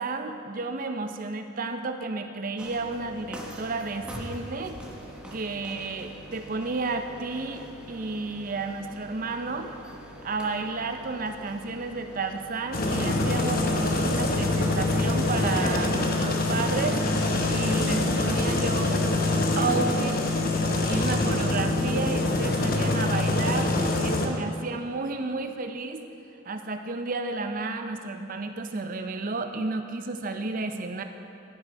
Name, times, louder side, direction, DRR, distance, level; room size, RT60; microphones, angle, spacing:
voice 1, 0.0-4.8 5.3-9.7 10.2-17.0 17.5-20.2 20.8-26.0 26.5-31.0, right 3 dB, 40° right, 7 dB, 0.6 m, -32 dB
sound 1, 2.6-20.5, equal, 5° right, 1.0 m, -45 dB
sound 2, 12.7-24.3, left 2 dB, 45° left, 0.9 m, -25 dB
14.0 x 6.3 x 5.1 m, 2.9 s
head